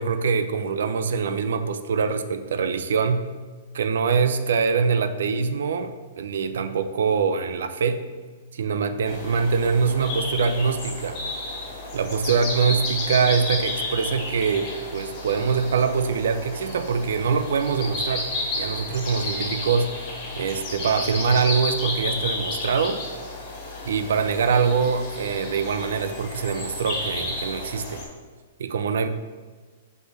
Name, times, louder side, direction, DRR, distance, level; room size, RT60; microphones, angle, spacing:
voice 1, 0.0-3.2 3.7-5.9 6.2-8.0 8.5-11.2 11.9-19.9 20.4-23.0 23.8-28.0 28.6-29.1, right 5 dB, 80° right, 10 dB, 0.5 m, -24 dB
sound 1, 9.0-28.0, left 2 dB, 30° left, 1.9 m, -32 dB
5.1 x 4.3 x 5.8 m, 1.4 s
hypercardioid pair, 160°, 0 cm